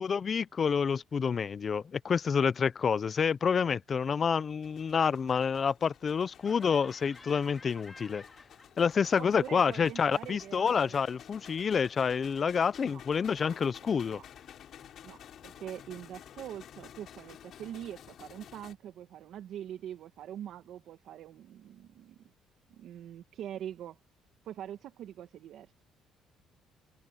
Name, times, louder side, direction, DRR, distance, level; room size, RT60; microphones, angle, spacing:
voice 1, 0.0-8.2 8.8-14.2, left 6 dB, 35° left, 0.7 m, -28 dB
sound 1, 4.6-18.7, left 10 dB, 55° left, 6.3 m, -53 dB
Laughter, 6.4-9.1 9.4-12.3, left 3 dB, 20° left, 2.9 m, -55 dB
voice 2, 9.2-11.0 12.8-13.0 13.5-13.6 13.8-14.2 15.0-22.2 22.7-24.0 24.4-25.8, right 11 dB, 65° right, 1.5 m, -44 dB
open air
cardioid pair, 105°, 0 cm